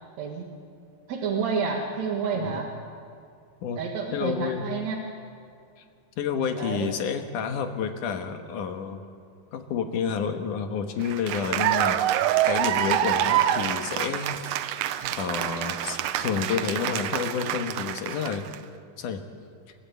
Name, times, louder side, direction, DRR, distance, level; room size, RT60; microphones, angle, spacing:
voice 1, 0.2-0.5 1.1-2.7 3.7-5.1 6.6-6.9, right 5 dB, 60° right, 0 dB, 2.8 m, -29 dB
voice 2, 4.1-4.6 6.2-9.0 9.5-14.3 15.2-18.5 19.0-19.2, left 7 dB, 70° left, 6 dB, 2.9 m, -30 dB
Cheering / Applause, 11.0-18.6, right 12 dB, 80° right, 2.4 m, -26 dB
28.5 x 13.5 x 8.4 m, 2.4 s
omnidirectional pair, 3.8 m